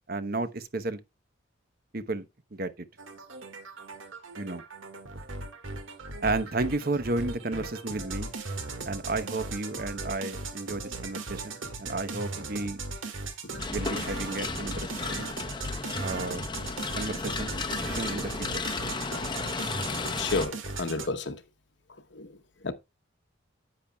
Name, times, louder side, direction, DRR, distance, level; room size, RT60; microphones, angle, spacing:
voice 1, 0.1-1.0 1.9-2.3 2.5-2.9 4.4-4.6 6.2-8.3 8.8-12.8 13.7-15.3 16.0-16.4 16.9-17.6 17.8-18.6, right 2 dB, 50° right, 0.9 m, -32 dB
sound 1, 3.0-21.1, right 3 dB, 90° right, 1.9 m, -38 dB
sound 2, 13.6-20.5, left 4 dB, 25° left, 0.7 m, -34 dB
voice 2, 20.2-21.4 22.1-22.3 22.6-22.7, left 3 dB, 65° left, 1.0 m, -31 dB
10.0 x 8.7 x 2.3 m
head